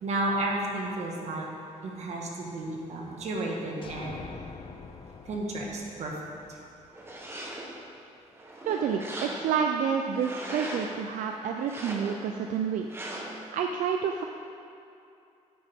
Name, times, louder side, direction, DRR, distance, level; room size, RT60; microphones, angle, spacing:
voice 1, 0.0-1.5 1.8-4.2 5.2-6.6, right 2 dB, 60° right, -1 dB, 1.6 m, -32 dB
sound 1, 3.8-7.5, left 5 dB, 40° left, 0.6 m, -45 dB
sound 2, 6.9-7.8 8.3-9.7 10.1-11.0 11.6-12.4 12.9-13.5, right 1 dB, 20° right, 1.2 m, -39 dB
voice 2, 8.7-12.9 13.5-14.3, right 7 dB, 85° right, 4 dB, 0.5 m, -29 dB
10.5 x 8.2 x 3.6 m, 2.6 s
cardioid pair, 125°, 13 cm